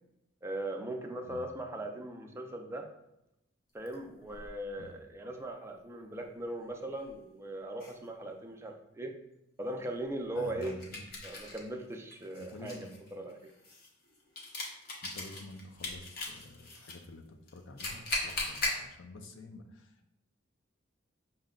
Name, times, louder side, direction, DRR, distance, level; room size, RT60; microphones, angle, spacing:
voice 1, 0.4-2.9 3.7-9.2 9.6-10.7 11.2-13.5, right 1 dB, 15° right, 3 dB, 0.4 m, -39 dB
sound 1, 3.9-4.5 7.0-7.1 7.8-7.9 10.6-11.7 12.1-16.9 17.5-18.8, left 2 dB, 55° left, 0.9 m, -38 dB
voice 2, 10.3-11.1 12.4-12.9 15.0-20.1, left 2 dB, 90° left, 5 dB, 0.6 m, -49 dB
5.8 x 2.1 x 3.7 m, 0.86 s
head